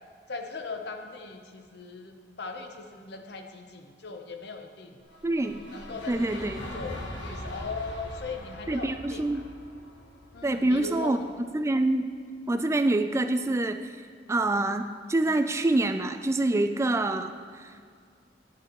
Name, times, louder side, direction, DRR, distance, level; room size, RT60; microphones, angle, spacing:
voice 1, 0.3-5.0 5.7-9.3 10.3-11.3, left 3 dB, 65° left, 5 dB, 0.9 m, -39 dB
sound 1, 5.0-11.2, left 1 dB, 90° left, 1.6 m, -41 dB
voice 2, 5.2-5.6 6.1-6.6 8.7-9.4 10.4-11.2 11.5-12.1 12.5-13.9 14.3-17.9, right 2 dB, 15° right, 8 dB, 0.3 m, -26 dB
12.5 x 10.0 x 3.0 m, 2.1 s
head